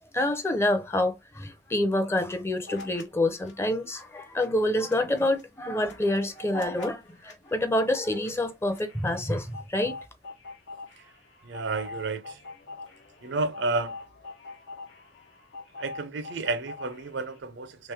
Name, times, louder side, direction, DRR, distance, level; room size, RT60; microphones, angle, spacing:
voice 1, 0.1-9.9, left 1 dB, 15° left, 0.5 m, -27 dB
sound 1, 2.7-3.0 3.3-17.4, left 3 dB, 85° left, 1.0 m, -45 dB
voice 2, 11.4-12.4 13.2-14.0 15.8-17.9, right 3 dB, 85° right, 0.6 m, -31 dB
3.2 x 3.0 x 3.3 m
head